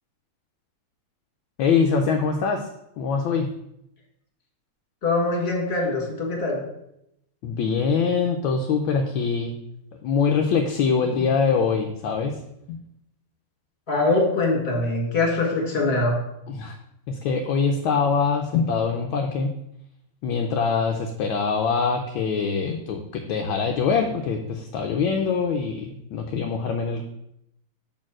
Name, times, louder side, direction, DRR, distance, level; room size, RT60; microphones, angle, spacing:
voice 1, 1.6-2.7 3.0-3.5 7.4-9.5 10.0-12.4 12.7-12.8 16.5-16.8 17.1-19.5 20.2-27.0, left 5 dB, 70° left, 3 dB, 1.3 m, -23 dB
voice 2, 5.0-6.6 13.9-16.2, left 2 dB, 30° left, -1 dB, 2.0 m, -23 dB
6.4 x 4.4 x 6.0 m, 0.81 s
omnidirectional pair, 2.4 m